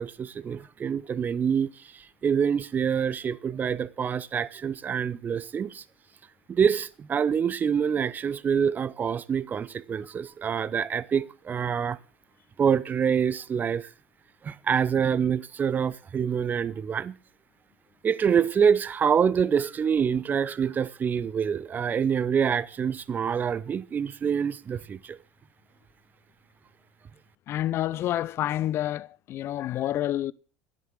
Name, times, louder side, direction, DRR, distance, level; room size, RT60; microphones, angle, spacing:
voice 1, 0.0-5.8 6.5-12.0 12.6-13.9 14.4-17.1 18.0-25.2, right 7 dB, 30° right, 0.7 m, -26 dB
voice 2, 27.5-30.3, left 13 dB, 45° left, 0.5 m, -28 dB
11.0 x 10.0 x 6.3 m
figure-of-eight pair, 70°, 6 cm